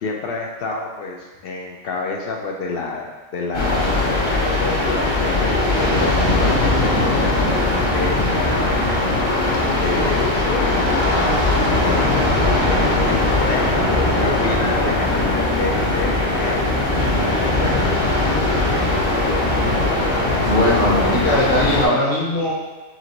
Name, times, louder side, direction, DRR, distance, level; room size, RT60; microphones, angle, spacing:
voice 1, 0.0-6.9 7.9-9.2 9.8-12.2 12.7-13.2 13.5-13.7 14.2-16.7 17.2-18.0, left 3 dB, 65° left, 0 dB, 0.6 m, -29 dB
sound 1, 3.5-21.9, left 2 dB, 25° left, 0.8 m, -19 dB
voice 2, 20.4-22.5, left 1 dB, 45° left, -5 dB, 1.1 m, -19 dB
5.8 x 2.6 x 2.9 m, 1.2 s
omnidirectional pair, 1.4 m